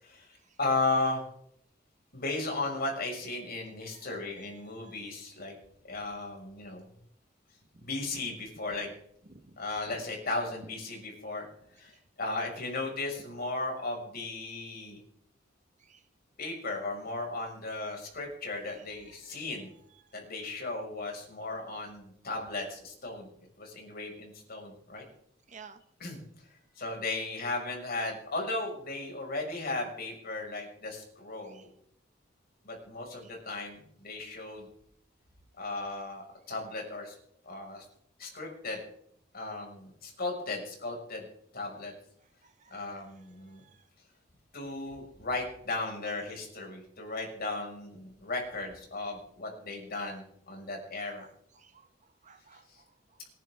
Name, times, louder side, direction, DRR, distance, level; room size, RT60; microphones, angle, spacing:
voice 1, 0.0-1.2 2.1-5.6 5.9-6.9 7.8-8.9 9.6-11.5 11.8-15.0 16.4-19.7 20.1-23.3 23.6-25.0 26.0-26.2 26.8-31.7 32.6-34.7 35.6-37.1 37.5-37.8 38.2-38.8 39.3-41.3 41.5-41.9 42.7-43.6 44.5-51.3 52.7-52.8, left 2 dB, 55° left, 1 dB, 5.9 m, -36 dB
voice 2, 25.5-25.8 31.5-31.7 33.2-33.3 42.4-42.8 43.6-43.8 51.0-51.3 51.5-51.9 52.2-52.8, right 5 dB, 40° right, 8 dB, 1.4 m, -54 dB
27.0 x 11.0 x 3.7 m, 0.68 s
head